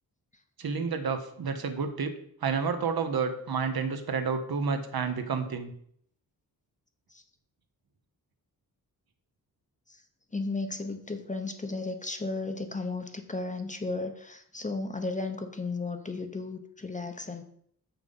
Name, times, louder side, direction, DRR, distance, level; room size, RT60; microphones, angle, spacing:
voice 1, 0.6-2.1 2.4-5.7, right 5 dB, 75° right, 7 dB, 1.1 m, -30 dB
voice 2, 10.3-17.4, left 3 dB, 20° left, 7 dB, 0.7 m, -34 dB
6.8 x 5.9 x 5.4 m, 0.66 s
wide cardioid pair, 140°, 37 cm